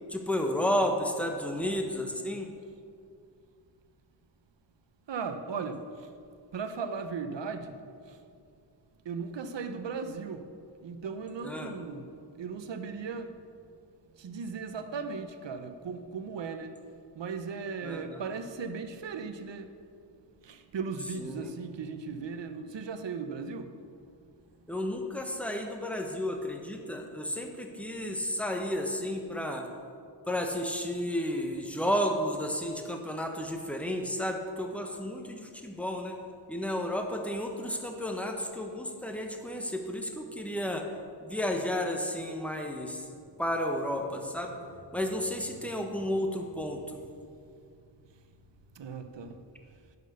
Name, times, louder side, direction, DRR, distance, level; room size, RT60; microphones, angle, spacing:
voice 1, 0.1-2.5 11.4-11.8 17.8-18.2 21.2-21.5 24.7-29.7 30.3-36.2 36.5-40.8 41.2-43.1 43.4-44.6 44.9-47.0, left 1 dB, 5° left, 3 dB, 1.1 m, -32 dB
voice 2, 5.1-5.8 6.5-7.7 9.0-10.4 10.8-13.3 14.2-16.7 17.2-19.7 20.4-23.7 48.8-49.4, right 5 dB, 75° right, 8 dB, 0.9 m, -37 dB
10.0 x 6.2 x 6.8 m, 2.4 s
wide cardioid pair, 80°, 44 cm